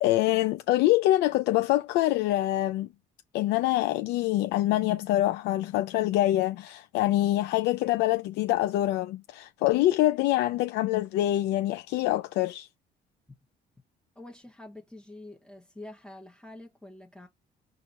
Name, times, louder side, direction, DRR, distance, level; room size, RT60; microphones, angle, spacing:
voice 1, 0.0-2.9 3.3-12.7, left 15 dB, 85° left, 0.4 m, -25 dB
voice 2, 14.2-17.3, left 1 dB, 5° left, 0.8 m, -46 dB
4.5 x 2.5 x 4.1 m
cardioid pair, 110°, 17 cm